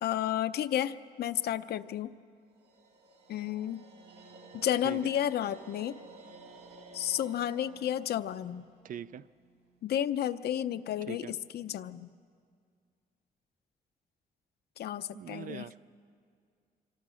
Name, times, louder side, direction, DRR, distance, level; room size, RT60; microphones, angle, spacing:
voice 1, 0.0-2.1 3.3-3.8 4.5-5.9 6.9-8.6 9.8-12.1 14.8-15.6, left 11 dB, 75° left, 11 dB, 0.7 m, -32 dB
sound 1, 2.6-9.7, right 3 dB, 80° right, 2.3 m, -53 dB
voice 2, 8.8-9.3 11.1-11.3 15.1-15.8, right 9 dB, 55° right, 15 dB, 0.5 m, -42 dB
26.0 x 25.0 x 6.4 m, 2.2 s
cardioid pair, 140°, 17 cm